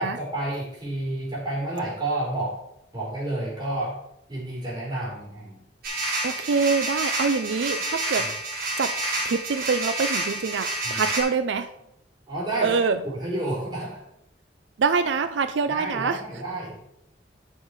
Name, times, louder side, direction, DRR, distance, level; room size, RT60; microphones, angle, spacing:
voice 1, 0.0-2.6 2.9-4.0 4.3-5.6 8.2-8.3 10.8-11.0 12.3-14.0 15.7-16.8, right 1 dB, 25° right, -5 dB, 3.8 m, -30 dB
sound 1, 5.8-11.2, right 2 dB, 60° right, 2.6 m, -29 dB
voice 2, 6.2-8.3 8.8-8.9 9.2-11.7 12.6-13.0 14.8-16.2, right 5 dB, 85° right, 10 dB, 0.5 m, -25 dB
10.0 x 5.7 x 4.8 m, 0.78 s
head